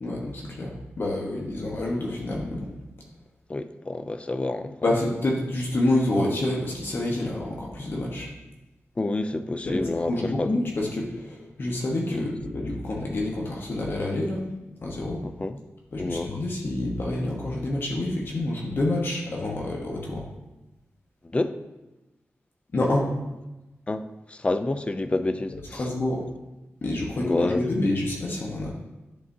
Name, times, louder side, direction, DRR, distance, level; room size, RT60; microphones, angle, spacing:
voice 1, 0.0-2.7 4.8-8.3 9.6-14.5 14.8-15.2 15.9-20.3 22.7-23.0 25.8-26.2 26.8-28.7, left 1 dB, 55° left, -3 dB, 1.1 m, -28 dB
voice 2, 3.5-4.7 9.0-10.5 12.1-12.3 15.2-15.6 16.0-16.3 21.3-21.6 23.9-25.9 27.1-27.6, left 2 dB, 25° left, 10 dB, 0.4 m, -28 dB
10.0 x 3.9 x 2.7 m, 1.0 s
wide cardioid pair, 100°, 5 cm